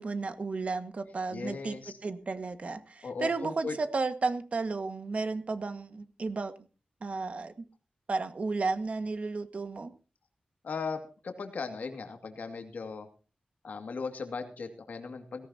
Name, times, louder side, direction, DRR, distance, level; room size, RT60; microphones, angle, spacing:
voice 1, 0.0-1.8 2.0-6.5 7.0-7.7 8.1-9.9, right 3 dB, 50° right, 9 dB, 1.8 m, -33 dB
voice 2, 1.3-1.9 3.0-3.8 10.6-13.1 13.6-15.5, left 4 dB, 85° left, 4 dB, 2.4 m, -37 dB
18.0 x 17.5 x 2.9 m, 0.35 s
wide cardioid pair, 115°, 3 cm